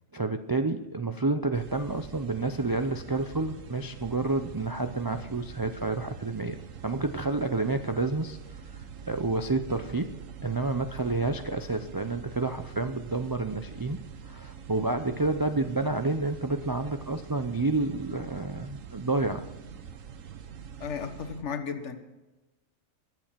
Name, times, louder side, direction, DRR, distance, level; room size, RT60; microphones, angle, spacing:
voice 1, 0.1-6.6 6.8-8.4 9.1-10.2 10.4-19.5, right 3 dB, 30° right, 7 dB, 0.4 m, -29 dB
sound 1, 1.5-21.4, right 7 dB, 80° right, 1.3 m, -45 dB
voice 2, 20.8-22.0, left 6 dB, 65° left, 5 dB, 1.6 m, -34 dB
22.5 x 7.7 x 5.8 m, 1.1 s
omnidirectional pair, 1.3 m